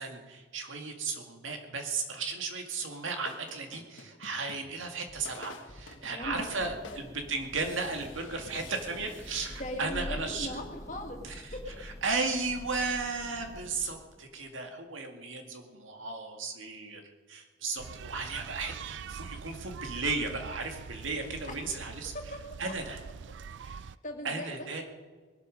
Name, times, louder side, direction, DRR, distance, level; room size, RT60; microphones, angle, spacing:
voice 1, 0.0-10.5 11.2-17.0 17.3-22.1 22.6-23.0 23.6-23.8 24.2-24.8, right 4 dB, 90° right, 4 dB, 2.2 m, -35 dB
sound 1, 2.7-10.1, left 3 dB, 85° left, 1.6 m, -50 dB
voice 2, 6.1-7.0 9.6-11.2 11.5-11.8 21.5-21.6 22.1-22.4 23.6-24.8, left 1 dB, 40° left, 2 dB, 2.3 m, -40 dB
Thunder / Rain, 6.3-14.3, left 1 dB, 15° left, 0.6 m, -46 dB
sound 2, 17.8-24.0, right 6 dB, 70° right, 0.4 m, -44 dB
20.0 x 12.5 x 5.3 m, 1.4 s
head